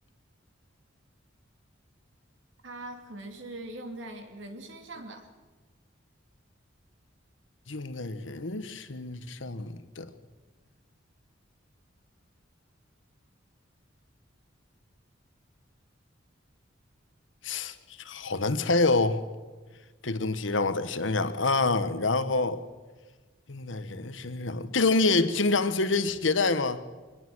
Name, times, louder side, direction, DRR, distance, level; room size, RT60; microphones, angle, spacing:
voice 1, 2.6-5.3, right 2 dB, 70° right, 2.7 m, -41 dB
voice 2, 7.7-10.1 17.4-19.2 20.0-22.6 23.5-26.8, left 3 dB, 75° left, 1.2 m, -27 dB
23.0 x 19.5 x 6.2 m
head